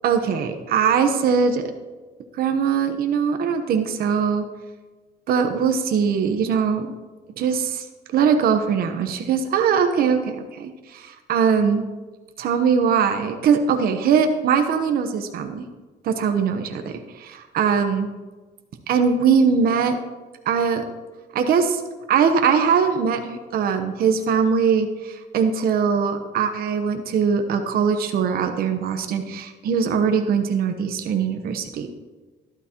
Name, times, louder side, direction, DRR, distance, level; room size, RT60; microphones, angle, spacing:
voice 1, 0.0-1.7 2.3-4.4 5.3-6.9 7.4-7.9 8.1-11.8 12.4-15.6 16.0-18.1 18.9-20.0 20.4-20.8 21.3-21.8 22.1-31.9, right 6 dB, 60° right, 6 dB, 1.0 m, -21 dB
12.0 x 12.0 x 3.0 m, 1.3 s
cardioid pair, 110°, 17 cm